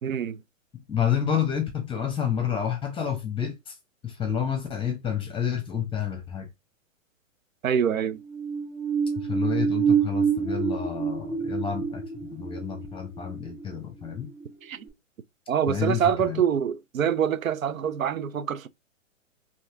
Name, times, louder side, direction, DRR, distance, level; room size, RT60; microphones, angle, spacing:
voice 1, 0.0-0.4 7.6-8.2 14.6-14.8 15.5-18.7, right 8 dB, 90° right, 0.6 m, -25 dB
voice 2, 0.9-3.7 4.0-6.5 9.1-12.0 12.3-14.3 15.7-16.4, left 8 dB, 15° left, 1.0 m, -29 dB
sound 1, 8.2-14.5 14.9-15.0, right 6 dB, 35° right, 1.6 m, -27 dB
4.4 x 2.9 x 3.5 m
hypercardioid pair, 120°, 39 cm